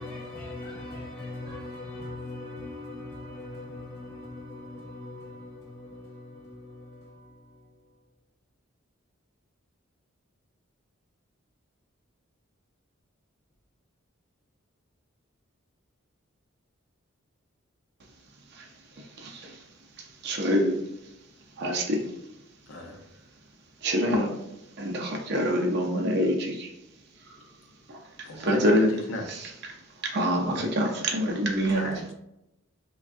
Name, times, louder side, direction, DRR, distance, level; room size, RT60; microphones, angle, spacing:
voice 1, 0.0-8.0, left 2 dB, 10° left, 0.3 m, -41 dB
voice 2, 19.0-19.6 20.0-20.8 21.6-22.1 23.8-24.4 24.8-26.7 27.3-27.4 27.9-28.9 29.3-29.5 30.0-31.9, equal, 50° right, 0.5 m, -26 dB
voice 3, 28.2-28.8 29.1-29.2 30.3-30.6 31.7-32.1, left 2 dB, 65° left, 0.6 m, -36 dB
3.4 x 2.2 x 2.4 m
head